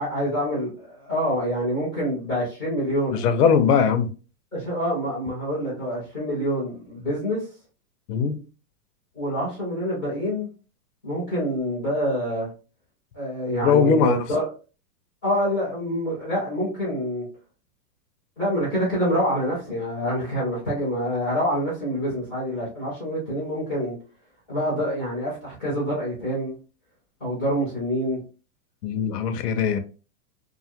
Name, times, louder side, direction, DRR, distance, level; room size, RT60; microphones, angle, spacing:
voice 1, 0.0-3.2 4.5-7.4 9.1-10.5 11.0-12.5 13.1-14.5 15.2-17.2 18.4-24.0 24.5-26.5 27.2-28.2, equal, 5° left, 0.5 m, -26 dB
voice 2, 3.1-4.1 8.1-8.4 13.6-14.2 28.8-29.8, left 6 dB, 85° left, 0.7 m, -20 dB
2.6 x 2.4 x 2.8 m
supercardioid pair, 180°, 46 cm